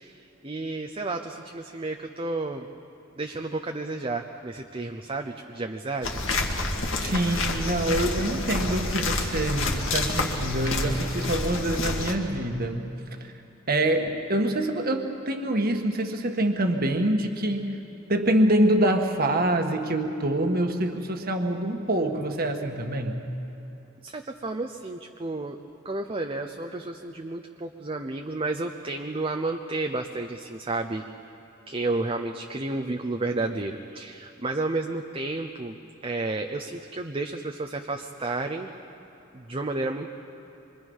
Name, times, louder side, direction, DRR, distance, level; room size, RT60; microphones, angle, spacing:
voice 1, 0.0-2.7 3.2-6.2 24.0-25.6 25.8-31.0 31.7-35.8 36.0-38.7 39.3-40.1, right 2 dB, 30° right, 4 dB, 0.8 m, -31 dB
sound 1, 6.0-12.1, left 2 dB, 80° left, 2.2 m, -28 dB
voice 2, 7.0-12.8 13.2-13.3 13.7-17.8 18.1-23.2, right 1 dB, 50° right, 4 dB, 1.6 m, -25 dB
26.0 x 24.0 x 5.6 m, 3.0 s
head